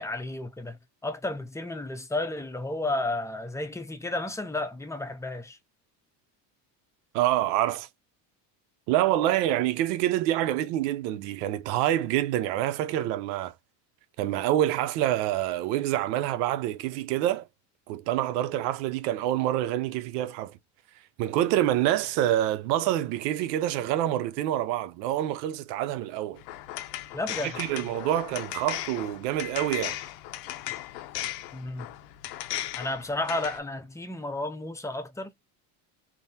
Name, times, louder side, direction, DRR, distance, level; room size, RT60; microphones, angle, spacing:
voice 1, 0.0-5.6 27.1-27.9 31.5-31.9 32.8-35.3, left 2 dB, 5° left, 0.5 m, -32 dB
voice 2, 7.1-7.9 8.9-13.5 14.2-17.5 17.9-20.6 21.2-26.4 27.4-30.0, right 13 dB, 85° right, 0.7 m, -27 dB
sound 1, 26.4-33.6, left 14 dB, 85° left, 0.8 m, -37 dB
3.7 x 2.1 x 2.7 m
supercardioid pair, 110°, 48 cm